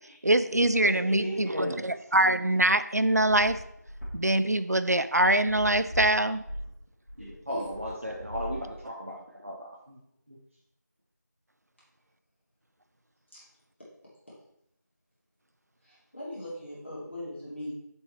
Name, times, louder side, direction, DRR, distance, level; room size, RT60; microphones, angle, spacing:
voice 1, 0.2-3.6 4.1-6.4, right 1 dB, 60° right, 12 dB, 0.4 m, -24 dB
voice 2, 0.8-1.9 7.2-10.0 10.3-10.4, equal, 40° right, -3 dB, 0.9 m, -36 dB
sound 1, 2.7-9.1, equal, 65° left, 2.1 m, -40 dB
voice 3, 16.1-17.7, left 1 dB, 40° left, -9 dB, 2.5 m, -39 dB
6.6 x 4.6 x 4.1 m, 0.75 s
figure-of-eight pair, 180°, 10 cm